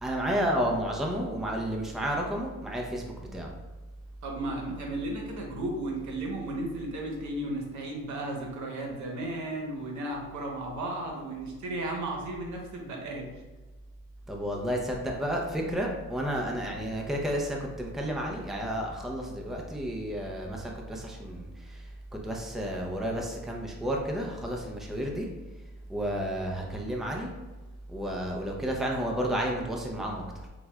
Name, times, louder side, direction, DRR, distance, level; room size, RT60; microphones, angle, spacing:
voice 1, 0.0-3.5 14.3-21.9 22.2-25.3 25.9-27.3 27.9-30.5, equal, ahead, 0 dB, 0.5 m, -31 dB
voice 2, 4.2-13.2, right 1 dB, 70° right, 0 dB, 0.9 m, -34 dB
5.9 x 2.3 x 2.3 m, 1.2 s
cardioid pair, 90°, 30 cm